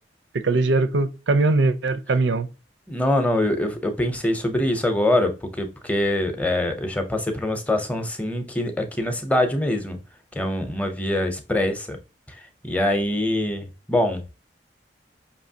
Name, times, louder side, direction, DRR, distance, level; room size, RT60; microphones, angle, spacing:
voice 1, 0.3-2.5, right 3 dB, 85° right, 0.5 m, -21 dB
voice 2, 2.9-10.0 10.4-12.0 12.6-14.4, left 1 dB, 10° left, 0.6 m, -24 dB
5.4 x 2.8 x 2.7 m
head